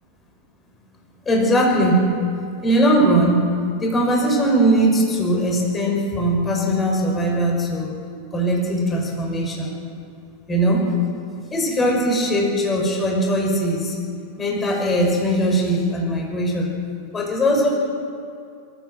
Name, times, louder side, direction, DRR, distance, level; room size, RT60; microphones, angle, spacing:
voice 1, 1.3-2.1 2.6-3.4 3.8-7.9 8.3-9.7 10.5-10.9 11.5-13.9 14.4-16.7 17.1-17.7, right 1 dB, 20° left, -1 dB, 5.6 m, -20 dB
24.0 x 14.5 x 7.8 m, 2.4 s
figure-of-eight pair, 90°, 0 cm